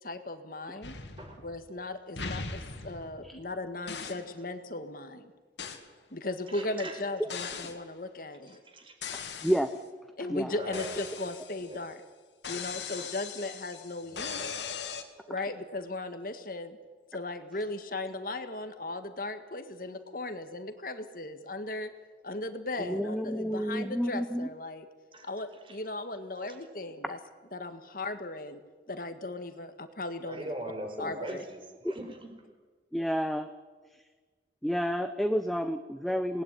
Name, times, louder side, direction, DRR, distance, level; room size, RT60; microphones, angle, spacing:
voice 1, 0.0-1.0 1.4-5.3 6.1-8.6 10.2-12.0 12.5-14.5 15.3-16.8 17.1-21.9 22.2-24.9 25.2-27.2 27.5-28.6 28.9-30.5 31.0-31.4, left 2 dB, 50° left, 8 dB, 1.7 m, -37 dB
sound 1, 0.8-1.8 2.2-3.5 3.9-4.3 5.6-5.9 7.3-7.8 9.0-9.8 10.7-11.8 12.4-15.0, left 5 dB, 80° left, 2.7 m, -40 dB
voice 2, 6.5-7.0 8.5-8.9 10.6-10.9 11.6-11.8 12.9-13.1 13.4-13.5 14.1-14.5 25.1-25.3 25.6-25.7 26.5-26.6 30.3-32.3, right 1 dB, 30° right, 4 dB, 4.8 m, -42 dB
voice 3, 22.8-24.5 31.0-31.1 32.9-33.5 34.6-36.4, equal, ahead, 8 dB, 0.8 m, -30 dB
27.0 x 19.5 x 10.0 m, 1.4 s
head